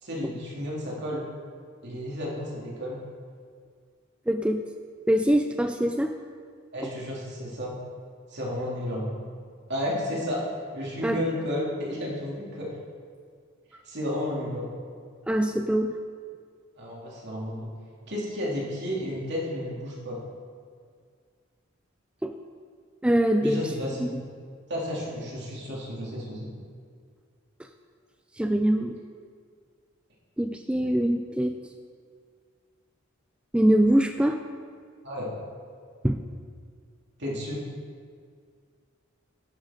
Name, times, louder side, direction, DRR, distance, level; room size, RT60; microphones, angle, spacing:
voice 1, 0.0-1.3 1.8-3.0 6.7-7.8 8.3-9.1 9.7-10.4 10.7-12.7 13.8-14.7 16.8-17.7 18.1-20.2 23.4-24.1 24.7-26.5 35.0-35.3 37.2-37.7, left 1 dB, 60° right, -4 dB, 2.8 m, -32 dB
voice 2, 4.3-4.7 5.1-6.1 6.8-6.9 11.0-11.2 15.3-16.0 22.2-22.4 23.0-23.7 24.0-24.1 27.6-27.7 28.3-29.0 30.4-31.6 33.5-34.4 36.0-36.2, right 1 dB, 5° right, 6 dB, 0.3 m, -23 dB
11.5 x 10.5 x 3.8 m, 2.1 s
head